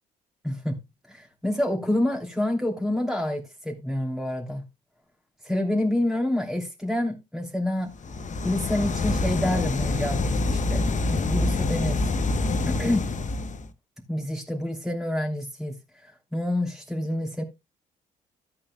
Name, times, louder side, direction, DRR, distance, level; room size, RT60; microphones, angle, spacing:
voice 1, 0.4-0.8 1.1-4.6 5.4-7.9 8.4-12.1 12.7-13.0 14.1-15.7 16.0-17.4, left 1 dB, ahead, 3.0 m, -28 dB
sound 1, 8.0-13.7, left 3 dB, 40° left, 1.0 m, -26 dB
14.5 x 8.6 x 2.3 m
hypercardioid pair, 50°, 20 cm